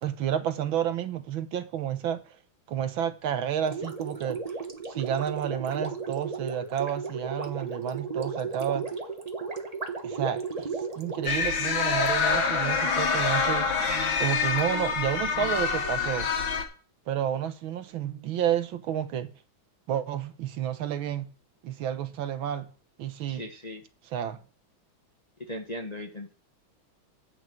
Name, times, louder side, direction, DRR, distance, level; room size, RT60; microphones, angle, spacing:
voice 1, 0.0-2.2 2.7-4.4 4.9-8.9 10.0-10.7 11.0-16.3 17.1-19.3 19.9-21.3 21.6-22.7 23.0-23.5 24.0-24.4, right 10 dB, 75° right, 1.8 m, -30 dB
Gurgling, 3.6-12.0, right 5 dB, 25° right, 0.9 m, -35 dB
sound 1, 11.3-16.6, left 5 dB, 70° left, 2.3 m, -26 dB
voice 2, 23.3-23.8 25.5-26.3, left 1 dB, 25° left, 0.9 m, -38 dB
8.1 x 6.7 x 7.5 m
omnidirectional pair, 2.2 m